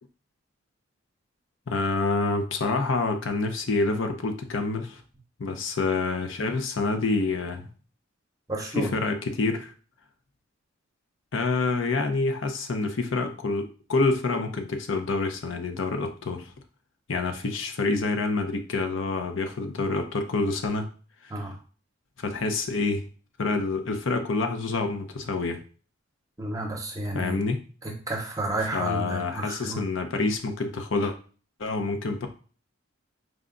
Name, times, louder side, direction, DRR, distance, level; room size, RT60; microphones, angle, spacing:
voice 1, 1.7-5.0 5.4-7.7 8.8-9.7 11.3-16.5 17.1-20.9 21.2-21.3 22.2-23.0 23.4-25.6 27.1-27.6 28.7-31.1 31.6-32.3, left 3 dB, 70° left, 5 dB, 0.6 m, -27 dB
voice 2, 8.5-8.9 21.3-21.6 26.4-27.4 27.8-29.8, right 1 dB, 15° right, 2 dB, 0.8 m, -31 dB
4.9 x 2.3 x 3.7 m, 0.39 s
head